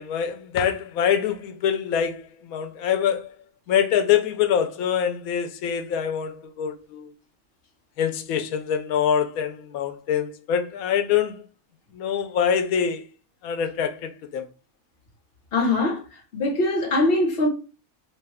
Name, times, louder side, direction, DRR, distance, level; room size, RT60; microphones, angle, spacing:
voice 1, 0.0-3.3 3.7-7.1 8.0-11.4 11.9-13.0 13.4-14.5, left 8 dB, 85° left, 1.0 m, -24 dB
voice 2, 15.5-16.0 16.3-17.5, left 2 dB, 50° left, 1.1 m, -22 dB
3.0 x 2.2 x 3.3 m
omnidirectional pair, 1.4 m